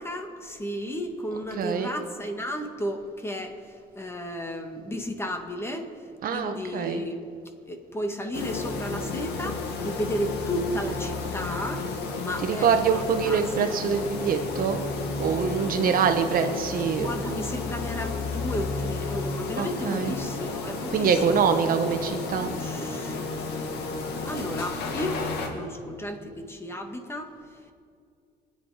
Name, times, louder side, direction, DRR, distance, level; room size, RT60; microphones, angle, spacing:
voice 1, 0.0-7.2 7.7-11.9 12.2-12.7 12.9-13.4 17.0-21.4 22.3-23.3 24.3-27.7, equal, 15° left, 5 dB, 1.7 m, -33 dB
voice 2, 1.6-1.9 6.2-7.0 12.4-14.8 15.2-17.1 19.6-20.1 20.9-22.5, right 6 dB, 55° right, 7 dB, 1.3 m, -24 dB
sound 1, 8.3-25.5, left 3 dB, 80° left, 2.3 m, -32 dB
25.5 x 9.4 x 5.0 m, 2.3 s
cardioid pair, 110°, 17 cm